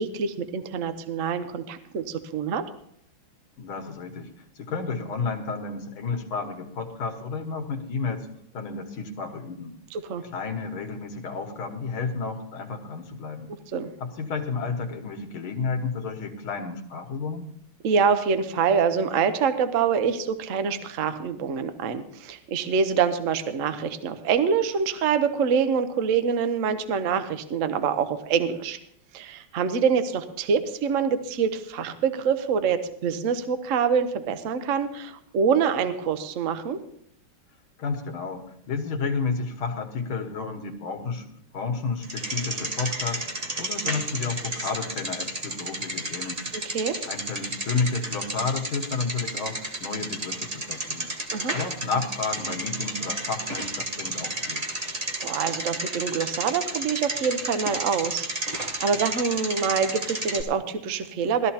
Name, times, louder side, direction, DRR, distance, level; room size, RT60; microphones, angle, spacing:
voice 1, 0.0-2.6 9.9-10.2 13.7-13.9 17.8-28.8 29.1-36.8 46.6-47.0 51.3-51.5 54.9-58.3 58.6-61.5, right 6 dB, 55° right, 9 dB, 0.9 m, -25 dB
voice 2, 3.6-8.3 8.5-9.7 10.3-13.5 14.0-17.5 37.8-46.4 47.1-51.1 51.5-54.7, left 4 dB, 70° left, 4 dB, 2.2 m, -31 dB
Bicycle, 42.0-60.4, right 1 dB, 25° right, 0.8 m, -32 dB
19.5 x 13.0 x 2.9 m, 0.69 s
omnidirectional pair, 2.4 m